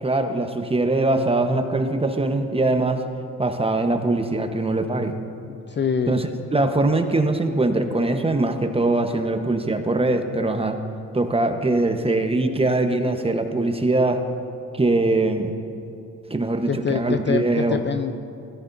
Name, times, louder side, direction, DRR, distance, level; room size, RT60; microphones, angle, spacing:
voice 1, 0.0-3.0 3.4-5.2 6.1-10.8 11.1-14.2 14.7-15.5 16.3-17.8, right 2 dB, 15° right, 6 dB, 1.1 m, -22 dB
voice 2, 5.5-6.2 16.6-18.1, left 6 dB, 30° left, 9 dB, 0.5 m, -25 dB
17.0 x 13.5 x 2.7 m, 2.6 s
supercardioid pair, 60°, 35 cm